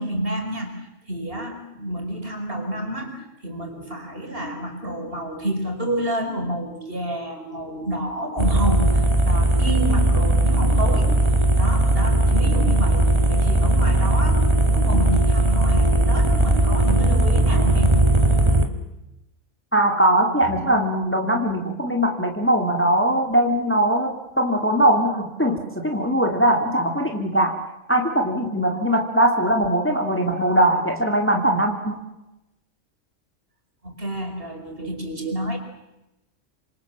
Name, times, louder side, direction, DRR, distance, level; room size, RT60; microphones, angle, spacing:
voice 1, 0.0-11.1 11.6-18.0 33.8-35.6, right 1 dB, 45° right, 3 dB, 5.3 m, -29 dB
sound 1, 8.4-18.7, right 2 dB, 20° right, 2.3 m, -18 dB
voice 2, 19.7-27.6 27.9-32.0, right 1 dB, 10° left, 3 dB, 2.6 m, -21 dB
27.0 x 26.5 x 7.4 m, 0.94 s
omnidirectional pair, 1.4 m